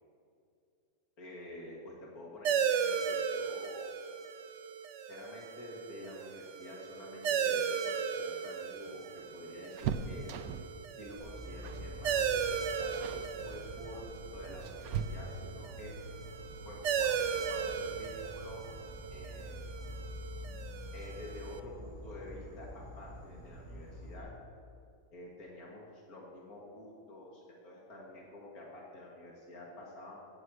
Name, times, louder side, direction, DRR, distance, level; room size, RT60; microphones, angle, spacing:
voice 1, 1.2-3.8 5.1-10.3 11.0-14.0 14.3-15.9 16.7-18.6 19.1-19.8 20.9-24.3 25.1-30.2, left 1 dB, 80° left, -3 dB, 2.2 m, -49 dB
sound 1, 2.4-21.6, right 7 dB, 60° right, 0.9 m, -36 dB
sound 2, 8.1-10.8 11.6-12.0 12.3-12.5 12.9-13.3 14.1-15.6 17.4-17.5 17.8-17.9 19.1-19.5 19.9-20.0 20.3-20.5, right 7 dB, 85° right, 1.1 m, -40 dB
Insect, 11.2-24.2, left 1 dB, 35° left, 2.2 m, -47 dB
16.5 x 7.7 x 4.7 m, 2.4 s
omnidirectional pair, 1.5 m